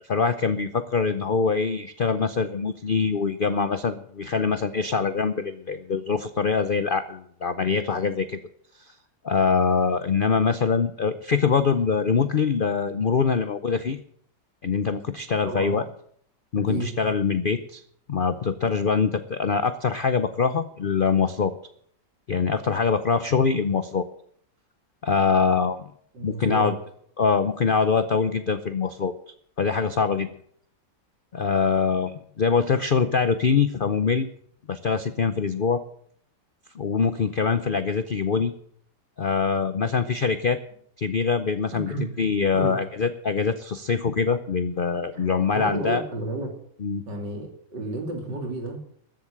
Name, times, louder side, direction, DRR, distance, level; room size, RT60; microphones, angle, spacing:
voice 1, 0.0-8.4 8.8-8.9 9.2-14.0 14.6-15.8 16.5-17.8 18.1-21.5 22.3-24.0 25.0-25.8 26.2-26.7 27.2-29.1 29.6-30.3 31.3-34.3 34.7-35.8 36.7-38.5 39.2-40.6 41.0-46.0 46.8-47.0, left 5 dB, 85° left, 11 dB, 0.4 m, -24 dB
voice 2, 15.4-15.9 16.6-16.9 26.1-26.7 41.7-42.1 42.5-42.8 45.1-45.3 45.5-46.6 47.1-48.8, right 2 dB, 70° right, 2 dB, 3.7 m, -31 dB
14.0 x 7.9 x 8.8 m, 0.63 s
omnidirectional pair, 2.0 m